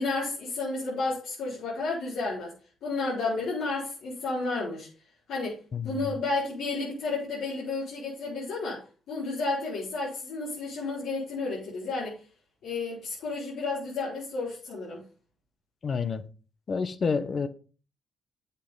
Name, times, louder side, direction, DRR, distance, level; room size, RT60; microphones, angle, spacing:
voice 1, 0.0-2.5 2.8-4.9 5.3-5.6 5.8-12.2 12.6-15.0, left 3 dB, 80° left, 4.3 m, -31 dB
voice 2, 5.7-6.2 15.8-16.2 16.7-17.5, left 5 dB, 45° left, 1.0 m, -29 dB
8.6 x 8.3 x 3.8 m
cardioid pair, 90°, 0 cm